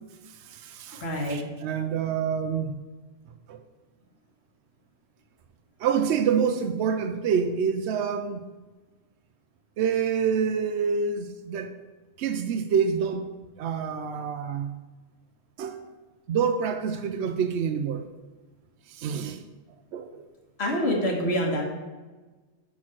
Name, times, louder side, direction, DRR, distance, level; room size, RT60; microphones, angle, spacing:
voice 1, 0.3-2.7 3.5-3.6 5.8-8.4 9.8-11.7 12.2-13.3 13.6-14.8 15.6-15.9 16.3-18.0 18.9-19.4 19.9-20.2, right 7 dB, 75° right, 0.9 m, -27 dB
voice 2, 1.0-1.4 20.6-21.6, equal, 65° left, 1.8 m, -26 dB
6.4 x 5.8 x 5.9 m
omnidirectional pair, 1.2 m